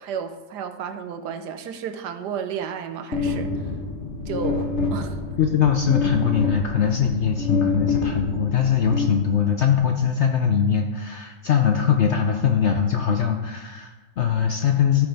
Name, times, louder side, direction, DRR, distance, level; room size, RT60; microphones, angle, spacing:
voice 1, 0.0-3.5 4.3-5.2, right 7 dB, 80° right, 9 dB, 1.3 m, -32 dB
sound 1, 3.1-9.7, left 4 dB, 45° left, 1.3 m, -27 dB
voice 2, 5.4-15.1, left 7 dB, 65° left, 4 dB, 0.7 m, -21 dB
14.0 x 6.3 x 3.4 m, 1.2 s
omnidirectional pair, 1.8 m